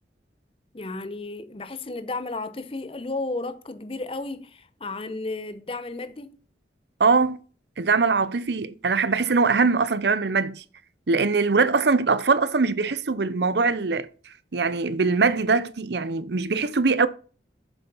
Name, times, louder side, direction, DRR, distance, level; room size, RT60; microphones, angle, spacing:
voice 1, 0.7-6.4, left 2 dB, 30° left, 0.8 m, -33 dB
voice 2, 7.0-7.4 7.8-10.6 11.1-14.1 14.5-17.1, right 4 dB, 75° right, 0.7 m, -22 dB
8.2 x 7.0 x 5.5 m
head